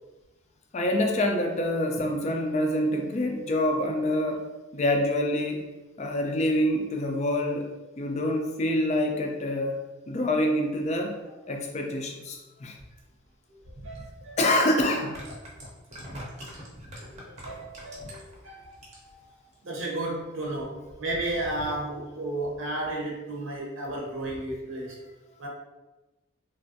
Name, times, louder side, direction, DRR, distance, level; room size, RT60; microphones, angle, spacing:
voice 1, 0.7-4.4 4.7-5.6 6.0-7.7 8.0-9.8 10.1-11.2 11.5-12.8 14.4-15.2, left 1 dB, 30° left, 2 dB, 0.3 m, -26 dB
voice 2, 13.5-14.4 17.1-25.0 25.4-25.5, right 1 dB, 65° right, -2 dB, 0.7 m, -34 dB
sound 1, 14.0-14.1 14.9-18.4 18.7-19.2 19.5-19.6, equal, 30° right, 0.6 m, -42 dB
3.2 x 2.3 x 2.6 m, 1.1 s
head